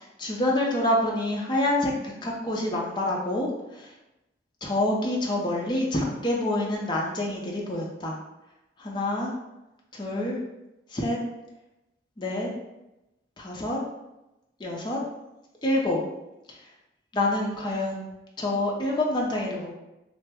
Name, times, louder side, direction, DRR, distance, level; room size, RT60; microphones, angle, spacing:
voice 1, 0.2-1.9 2.2-3.9 4.6-8.2 8.8-9.3 9.9-10.4 10.9-11.2 12.2-12.5 13.4-13.8 14.6-15.0 15.6-16.0 17.1-18.1 18.4-19.7, left 1 dB, 25° left, -2 dB, 0.5 m, -27 dB
3.2 x 2.0 x 3.4 m, 0.95 s
head